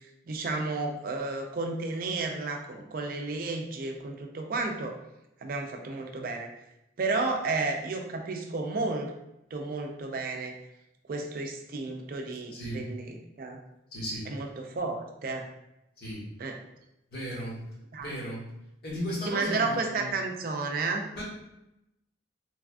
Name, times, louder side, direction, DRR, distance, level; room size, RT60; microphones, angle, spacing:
voice 1, 0.3-5.0 5.4-6.5 7.0-9.1 9.5-10.5 11.1-13.6 14.3-15.5 16.4-16.6 17.9-18.2 19.3-21.1, right 3 dB, 50° right, 3 dB, 0.4 m, -32 dB
voice 2, 12.5-12.8 13.9-14.3 16.0-16.2 17.1-17.6 18.0-18.4 18.8-20.1 21.2-21.3, equal, 55° left, -7 dB, 1.2 m, -35 dB
3.3 x 2.2 x 2.4 m, 0.88 s
head